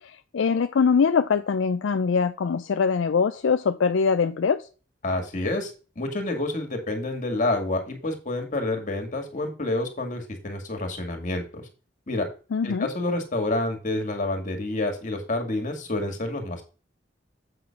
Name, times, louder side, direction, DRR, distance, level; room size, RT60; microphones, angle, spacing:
voice 1, 0.0-4.7 12.5-12.9, left 5 dB, 75° left, 0.4 m, -23 dB
voice 2, 5.0-11.7 12.1-12.3 12.6-16.6, left 2 dB, 40° left, 2.0 m, -28 dB
7.9 x 3.9 x 5.8 m
head